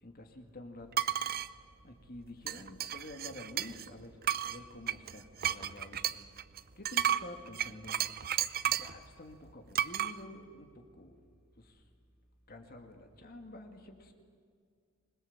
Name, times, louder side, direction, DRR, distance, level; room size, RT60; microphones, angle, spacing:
voice 1, 0.0-1.1 1.8-6.2 6.8-8.0 8.6-11.2 11.6-11.8 12.5-14.1, left 1 dB, 45° left, 4 dB, 2.3 m, -49 dB
sound 1, 0.9-1.5 2.5-3.9 4.2-9.0 9.8-10.1, right 10 dB, 45° right, 0.7 m, -33 dB
27.0 x 21.0 x 7.5 m, 2.2 s
head